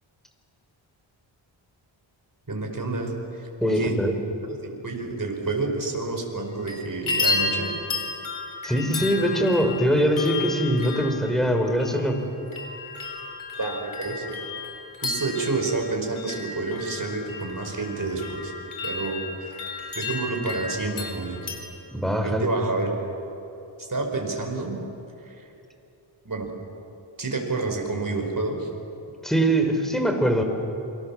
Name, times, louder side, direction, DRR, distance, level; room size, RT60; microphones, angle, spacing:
voice 1, 2.5-4.0 4.5-7.7 13.6-14.5 15.0-18.5 18.8-19.7 20.0-21.4 22.2-22.9 23.8-24.8 25.2-25.5 26.2-26.5 27.2-28.7, right 3 dB, 40° right, 2 dB, 5.3 m, -29 dB
voice 2, 3.6-4.2 8.6-12.2 21.9-22.5 29.2-30.4, equal, ahead, 5 dB, 4.0 m, -22 dB
sound 1, 6.4-6.8 7.1-21.6, left 3 dB, 80° left, 4.3 m, -33 dB
28.0 x 24.5 x 7.4 m, 3.0 s
wide cardioid pair, 70°, 48 cm